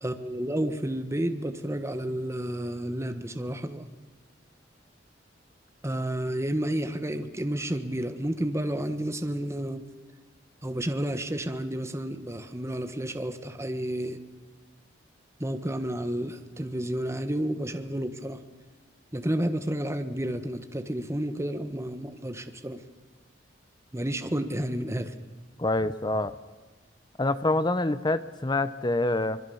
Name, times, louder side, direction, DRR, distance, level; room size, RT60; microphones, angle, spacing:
voice 1, 0.0-3.9 5.8-9.8 10.6-14.2 15.4-18.4 19.1-22.8 23.9-25.1, right 1 dB, 15° right, 7 dB, 1.4 m, -31 dB
voice 2, 25.6-26.4 27.2-29.4, left 2 dB, 25° left, 13 dB, 0.8 m, -26 dB
26.0 x 21.0 x 7.1 m, 1.3 s
head